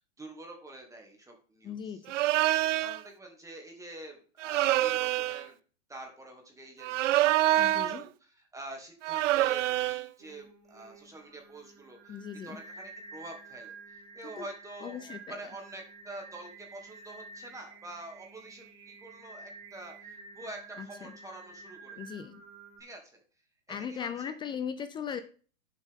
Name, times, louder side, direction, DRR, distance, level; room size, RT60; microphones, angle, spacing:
voice 1, 0.0-2.0 2.8-5.6 5.9-22.0 22.8-23.2 23.7-24.3 25.1-25.2, right 2 dB, 10° right, 2 dB, 2.5 m, -47 dB
voice 2, 1.6-2.1 7.6-8.1 12.1-12.6 14.4-14.5 14.8-15.4 20.8-21.1 22.0-22.4 23.7-25.2, left 7 dB, 15° left, 10 dB, 0.4 m, -38 dB
sound 1, 2.1-3.0 4.4-5.5 6.8-8.0 9.0-10.1, right 15 dB, 70° right, 0.5 m, -26 dB
Singing, 10.2-22.8, right 4 dB, 50° right, 3.9 m, -50 dB
10.5 x 7.5 x 3.7 m, 0.39 s
hypercardioid pair, 125°, 38 cm